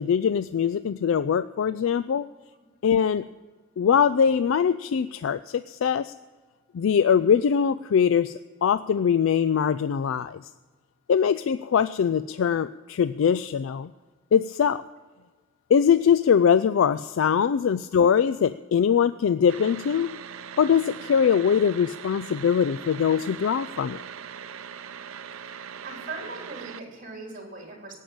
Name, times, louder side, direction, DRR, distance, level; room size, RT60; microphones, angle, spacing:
voice 1, 0.0-2.3 2.8-3.3 3.8-6.1 6.7-10.4 11.1-13.9 14.3-14.8 15.7-20.1 20.6-24.0, left 7 dB, 75° left, 13 dB, 0.3 m, -22 dB
sound 1, 19.5-26.8, right 7 dB, 90° right, 0.6 m, -40 dB
voice 2, 25.8-28.0, right 3 dB, 40° right, 1 dB, 3.6 m, -39 dB
17.0 x 7.6 x 8.7 m, 1.3 s
head